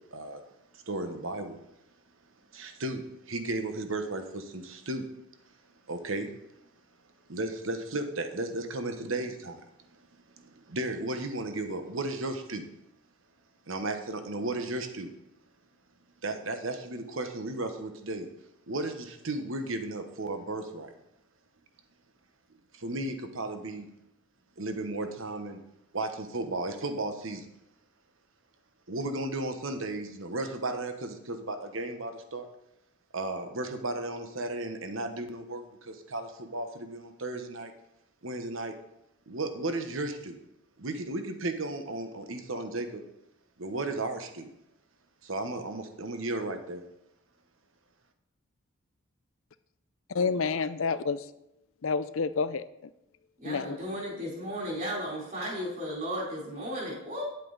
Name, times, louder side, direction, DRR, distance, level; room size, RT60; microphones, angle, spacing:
voice 1, 0.1-0.4 0.7-1.6 2.5-5.1 5.9-6.3 7.3-9.6 9.9-10.0 10.4-12.6 13.7-15.1 16.2-18.3 18.7-20.9 22.7-23.9 24.6-25.6 25.9-27.4 28.9-32.5 33.1-37.7 38.2-38.7 39.3-40.4 40.8-43.0 43.6-44.5 45.2-46.8, right 2 dB, 65° right, 7 dB, 1.1 m, -34 dB
voice 2, 50.1-51.2 51.8-52.6 53.4-53.8, left 5 dB, 65° left, 14 dB, 0.5 m, -28 dB
voice 3, 53.4-57.2, equal, 40° right, -4 dB, 3.8 m, -35 dB
10.0 x 8.2 x 4.1 m, 0.85 s
head